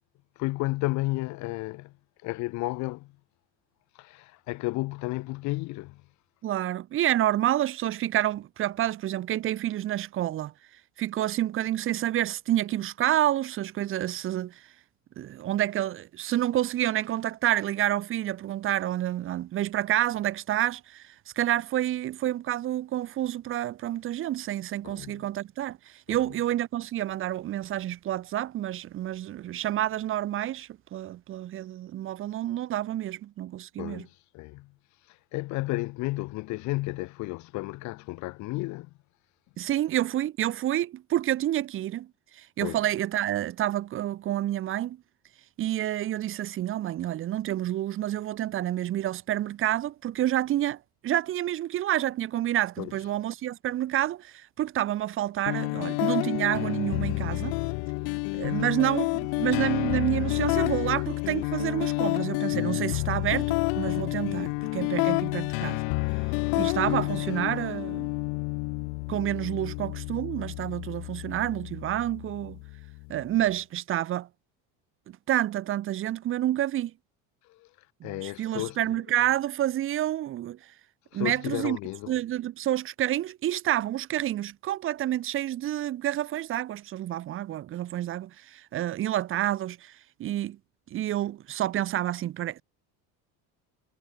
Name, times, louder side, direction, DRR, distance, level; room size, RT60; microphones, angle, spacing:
voice 1, 0.3-1.9 2.2-3.1 3.9-6.1 24.8-25.3 26.1-26.2 33.8-38.9 42.6-42.8 52.8-53.1 77.4-79.0 81.1-82.1, left 21 dB, 50° left, 6.6 m, -33 dB
voice 2, 6.4-10.5 11.0-14.6 15.2-34.0 39.6-42.1 42.3-45.0 45.6-57.6 58.3-65.8 66.5-68.1 69.1-72.6 73.1-74.3 75.1-76.9 78.0-80.6 81.1-81.8 82.1-89.9 90.2-90.6 90.9-92.6, right 13 dB, 35° right, 6.1 m, -29 dB
sound 1, 55.5-73.4, left 40 dB or more, 70° left, 2.2 m, -29 dB
cardioid pair, 180°, 35 cm